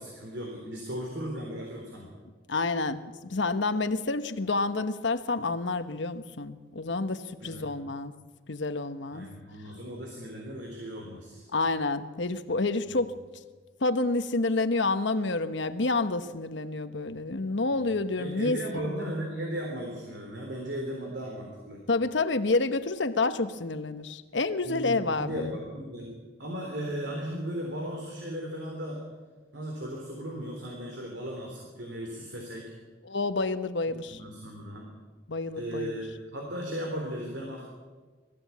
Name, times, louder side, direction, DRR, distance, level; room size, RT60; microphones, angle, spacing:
voice 1, 0.0-2.1 7.4-7.7 9.1-11.4 12.9-13.0 17.7-17.9 18.2-21.8 24.6-29.0 29.5-32.7 33.9-34.9 35.5-37.7, equal, 70° right, 0 dB, 3.6 m, -36 dB
voice 2, 2.5-8.1 8.5-9.3 11.5-13.1 13.8-18.6 21.9-25.6 33.1-34.2 35.3-35.9, left 3 dB, 75° left, 10 dB, 1.1 m, -29 dB
20.5 x 15.0 x 8.5 m, 1.4 s
head